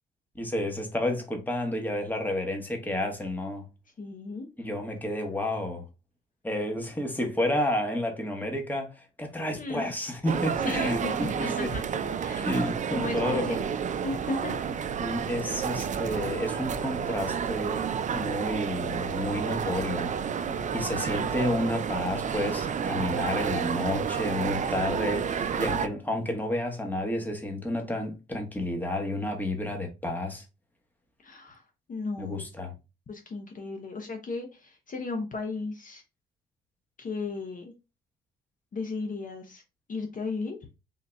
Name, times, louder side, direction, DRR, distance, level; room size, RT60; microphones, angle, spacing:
voice 1, 0.3-3.7 4.6-5.9 6.4-11.7 12.4-13.6 15.0-20.2 20.7-30.4 32.2-32.7, left 1 dB, 10° left, 1.2 m, -31 dB
voice 2, 4.0-4.5 9.5-9.8 10.6-11.8 12.2-12.5 12.9-14.7 20.5-21.0 25.5-25.9 31.2-32.4 33.1-36.0 37.0-37.7 38.7-39.6 39.9-40.6, left 3 dB, 40° left, 0.9 m, -35 dB
sound 1, 10.3-25.9, right 7 dB, 40° right, 0.4 m, -30 dB
3.7 x 2.7 x 3.4 m
cardioid pair, 90°, 20 cm